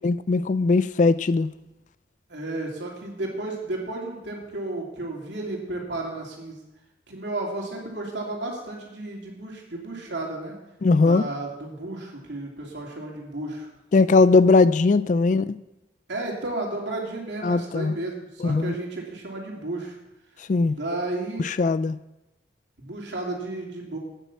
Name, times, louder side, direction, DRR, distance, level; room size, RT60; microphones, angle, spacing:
voice 1, 0.0-1.5 10.8-11.2 13.9-15.5 17.4-18.0 18.4-18.7 20.5-20.8 21.4-22.0, left 3 dB, 40° left, 0.3 m, -19 dB
voice 2, 2.3-6.6 7.1-10.5 11.0-13.7 16.1-20.0 20.7-21.4 22.8-24.0, right 2 dB, 65° right, 2.8 m, -33 dB
9.0 x 8.7 x 7.2 m
head